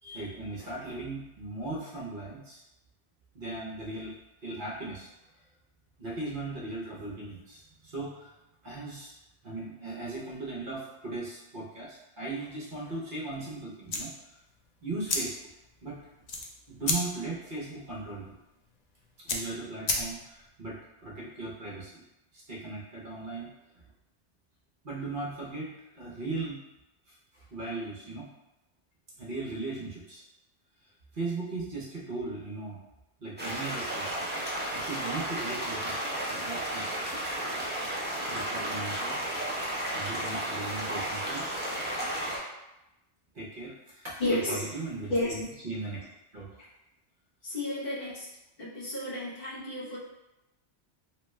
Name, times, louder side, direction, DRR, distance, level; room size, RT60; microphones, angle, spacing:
voice 1, 0.0-2.6 3.3-4.1 4.4-5.1 6.0-8.3 8.6-9.1 9.4-14.4 14.8-15.3 15.8-16.0 16.7-18.4 19.2-22.0 22.3-23.5 24.8-26.6 27.1-28.3 29.2-30.2 31.1-32.8 33.2-34.1 34.3-35.9 36.3-37.0 38.3-39.4 39.9-41.5 43.3-46.0 46.3-46.5, right 3 dB, 50° right, -5 dB, 0.8 m, -38 dB
sound 1, 13.8-20.5, left 3 dB, 70° left, 0.4 m, -35 dB
sound 2, 33.4-42.4, right 1 dB, 15° right, 0.3 m, -33 dB
voice 2, 44.2-44.7 45.1-45.3 46.6-46.7 47.4-48.3 48.6-50.0, left 1 dB, 55° left, -7 dB, 1.0 m, -32 dB
3.0 x 2.2 x 3.1 m, 0.92 s
omnidirectional pair, 1.2 m